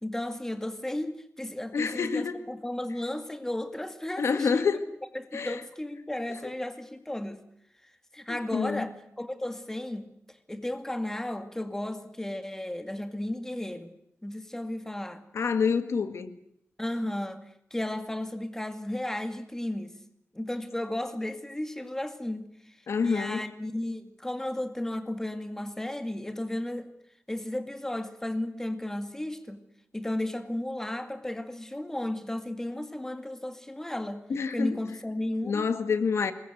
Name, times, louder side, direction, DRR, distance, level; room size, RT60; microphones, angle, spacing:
voice 1, 0.0-4.7 5.1-7.4 8.1-13.9 14.2-15.2 16.8-19.9 20.3-22.8 23.0-26.9 27.3-29.6 29.9-35.7, left 1 dB, 10° left, 2.2 m, -34 dB
voice 2, 1.7-2.4 4.2-4.8 5.3-5.6 8.3-8.9 15.3-16.3 22.9-23.4 34.3-34.8 35.4-36.3, left 5 dB, 75° left, 1.9 m, -27 dB
26.0 x 22.0 x 8.0 m
wide cardioid pair, 130°, 5 cm